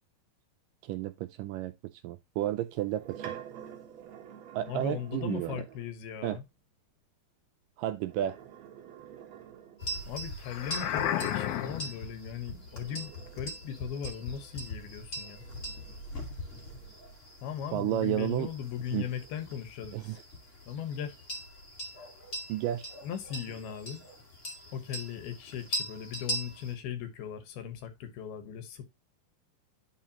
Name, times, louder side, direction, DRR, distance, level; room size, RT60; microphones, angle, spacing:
voice 1, 0.9-1.7 2.0-3.4 4.5-5.6 6.2-6.4 7.8-8.4 17.7-18.5 18.9-19.1 19.9-20.2 22.5-22.9, right 13 dB, 80° right, 2.0 m, -32 dB
sound 1, 2.6-5.9 7.9-10.2 12.2-17.4 17.9-19.7, right 9 dB, 60° right, 2.2 m, -50 dB
voice 2, 4.7-6.4 10.1-15.4 17.4-20.2 20.7-21.2 23.0-24.0 24.7-28.8, left 8 dB, 90° left, 3.2 m, -38 dB
sound 2, 9.8-26.7, equal, 25° left, 1.7 m, -41 dB
sound 3, 10.5-12.1, left 11 dB, 70° left, 1.9 m, -32 dB
10.5 x 4.7 x 2.9 m
omnidirectional pair, 4.3 m